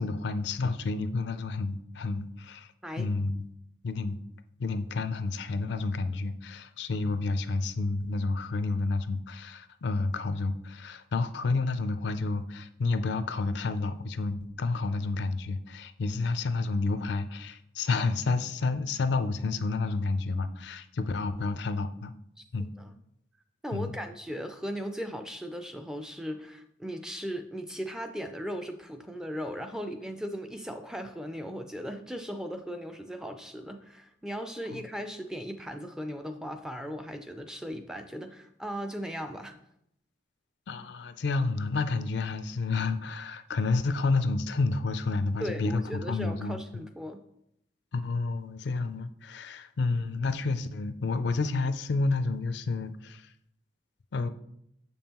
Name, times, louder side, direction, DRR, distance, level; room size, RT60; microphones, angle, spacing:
voice 1, 0.0-2.7 3.0-3.5 3.8-4.2 4.6-22.1 22.5-22.7 23.7-23.9 34.7-34.8 40.7-46.8 47.9-53.3 54.1-54.3, left 3 dB, 65° left, 11 dB, 0.4 m, -30 dB
voice 2, 22.6-22.9 23.6-39.6 45.4-47.2, equal, 5° right, 6 dB, 0.3 m, -37 dB
7.0 x 5.4 x 2.9 m, 0.75 s
head